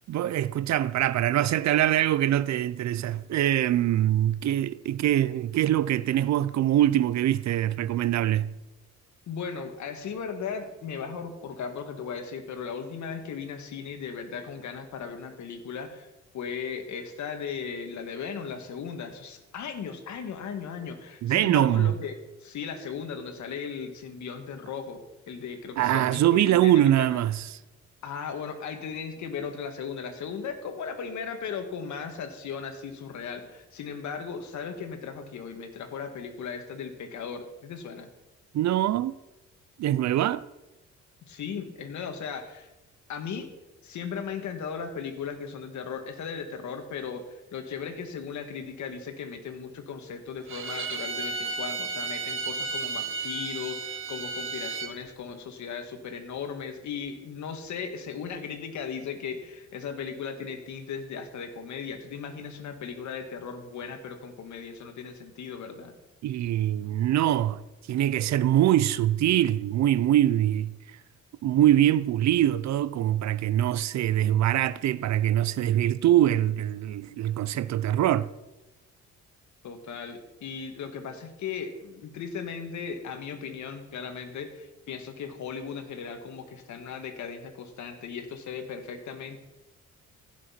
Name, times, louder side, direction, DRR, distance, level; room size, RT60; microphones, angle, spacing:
voice 1, 0.1-8.5 21.2-21.9 25.8-27.5 38.5-39.1 39.8-40.4 66.2-67.6 67.9-70.7 71.4-78.3, right 12 dB, 65° right, 0.6 m, -23 dB
voice 2, 9.3-16.1 16.3-22.2 22.4-27.2 28.0-38.1 41.3-42.7 43.1-43.5 43.8-65.9 79.6-89.4, left 6 dB, 70° left, 1.7 m, -37 dB
Bowed string instrument, 50.5-54.9, right 4 dB, 45° right, 1.5 m, -33 dB
15.0 x 6.3 x 5.8 m
cardioid pair, 90°, 30 cm